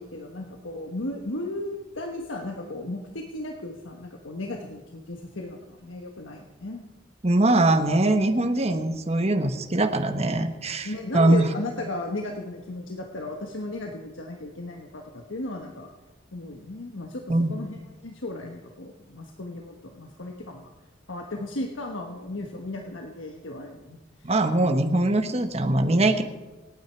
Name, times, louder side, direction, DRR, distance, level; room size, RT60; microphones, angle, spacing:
voice 1, 0.0-6.8 10.8-15.9 16.3-20.7 21.1-24.3, left 2 dB, 90° left, 2 dB, 1.3 m, -35 dB
voice 2, 7.2-11.5 17.3-17.5 24.2-26.2, right 2 dB, 35° right, 7 dB, 1.3 m, -22 dB
27.0 x 9.2 x 4.6 m, 1.2 s
head